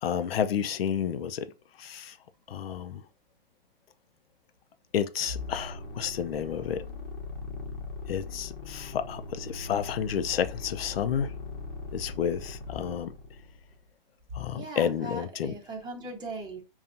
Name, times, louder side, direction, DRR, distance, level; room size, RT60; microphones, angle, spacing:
voice 1, 0.0-1.5 1.8-2.2 2.5-3.0 4.9-6.8 8.1-11.3 11.9-13.1 14.3-15.5, left 8 dB, 75° left, 0.6 m, -30 dB
sound 1, 5.3-13.8, left 3 dB, 45° left, 1.2 m, -40 dB
voice 2, 14.5-16.6, right 2 dB, 15° right, 1.0 m, -39 dB
5.5 x 2.4 x 2.6 m
hypercardioid pair, 135°, 30 cm